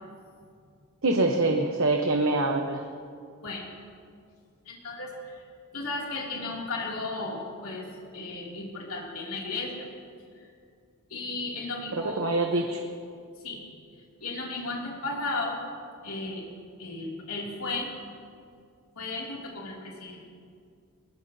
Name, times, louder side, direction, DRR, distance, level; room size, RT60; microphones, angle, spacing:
voice 1, 1.0-2.9 11.9-12.8, right 2 dB, 65° right, 3 dB, 1.0 m, -25 dB
voice 2, 4.6-5.4 5.7-7.8 8.1-9.9 10.4-10.5 11.1-12.3 13.4-13.6 14.2-15.6 16.0-16.4 16.8-17.9 19.0-20.3, left 3 dB, 80° left, -3 dB, 2.8 m, -34 dB
22.0 x 20.5 x 2.8 m, 2.3 s
head